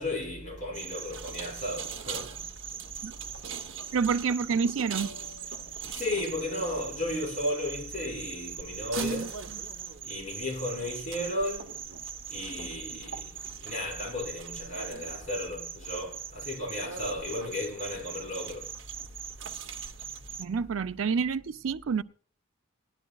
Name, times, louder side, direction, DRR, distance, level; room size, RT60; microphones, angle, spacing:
voice 1, 0.0-2.3 5.9-9.3 10.0-11.7 12.3-13.2 13.6-18.7, left 1 dB, 40° left, 6.0 m, -34 dB
sound 1, 0.7-20.5, right 7 dB, 70° right, 0.9 m, -40 dB
voice 2, 3.9-5.1 9.0-9.3 20.4-22.0, right 5 dB, 90° right, 0.5 m, -28 dB
18.5 x 11.0 x 2.3 m
head